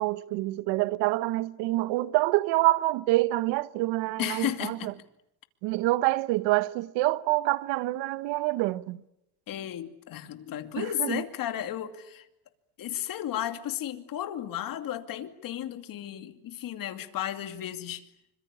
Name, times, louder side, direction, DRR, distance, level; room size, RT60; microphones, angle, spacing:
voice 1, 0.0-4.9 5.6-9.0 10.8-11.2, right 18 dB, 80° right, 1.1 m, -26 dB
voice 2, 4.2-4.9 9.5-12.3 12.8-18.1, left 11 dB, 50° left, 2.6 m, -34 dB
27.5 x 25.0 x 8.4 m
cardioid pair, 140°, 43 cm